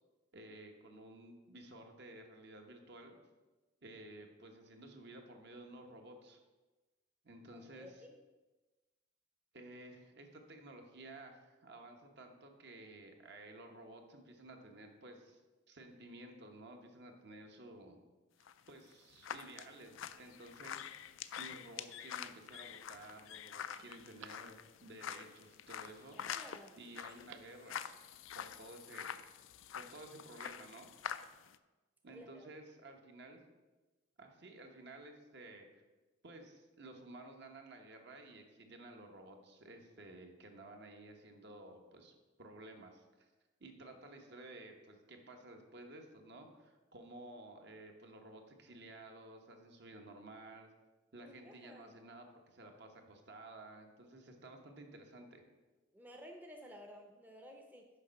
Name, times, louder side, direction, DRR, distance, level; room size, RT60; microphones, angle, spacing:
voice 1, 0.3-3.2 3.8-6.4 7.2-7.9 9.5-15.4 15.7-18.0 18.7-24.6 24.8-26.2 26.7-27.8 28.3-29.2 29.7-30.9 32.0-33.4 34.2-35.7 36.2-43.3 43.6-50.7 51.1-55.4, right 2 dB, 60° right, 3 dB, 1.1 m, -54 dB
voice 2, 7.7-8.1 26.2-26.7 32.1-32.5 51.2-51.9 55.9-57.9, equal, 10° right, 2 dB, 0.6 m, -54 dB
sound 1, 18.4-31.6, left 9 dB, 80° left, 0.4 m, -47 dB
Telephone, 23.5-25.0 27.0-27.7 28.0-28.1, right 7 dB, 85° right, 0.5 m, -60 dB
6.5 x 5.4 x 6.3 m, 1.2 s
head